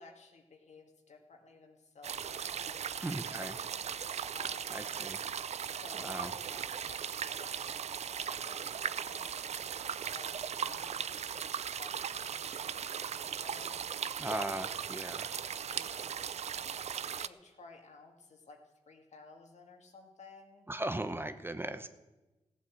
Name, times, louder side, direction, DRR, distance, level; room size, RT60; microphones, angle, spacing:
voice 1, 0.0-3.8 4.3-4.9 5.6-7.8 8.1-9.6 10.0-14.3 14.5-14.7 15.7-20.7, left 3 dB, 75° left, 3 dB, 2.1 m, -55 dB
sound 1, 2.0-17.3, right 8 dB, 65° right, 0.4 m, -38 dB
voice 2, 3.0-3.5 4.7-5.2 6.0-6.3 14.2-15.3 20.7-21.9, right 1 dB, 20° right, 10 dB, 0.8 m, -37 dB
15.5 x 8.4 x 7.7 m, 1.1 s
cardioid pair, 70°, 12 cm